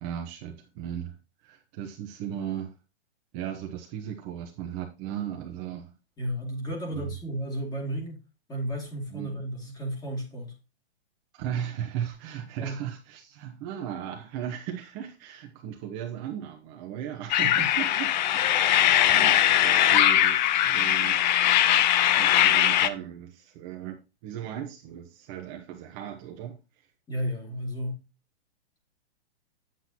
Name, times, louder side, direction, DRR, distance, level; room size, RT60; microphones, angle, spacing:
voice 1, 0.0-1.1 1.4-2.7 3.3-5.9 6.9-7.1 9.1-9.3 11.3-21.8 22.2-26.9, right 10 dB, 30° right, 1.0 m, -37 dB
voice 2, 6.2-8.2 8.5-10.6 12.6-12.8 17.4-17.7 27.1-28.0, equal, 10° left, 2.4 m, -33 dB
sound 1, 17.3-22.9, left 12 dB, 45° left, 0.7 m, -21 dB
9.0 x 8.0 x 2.9 m
hypercardioid pair, 150°, 33 cm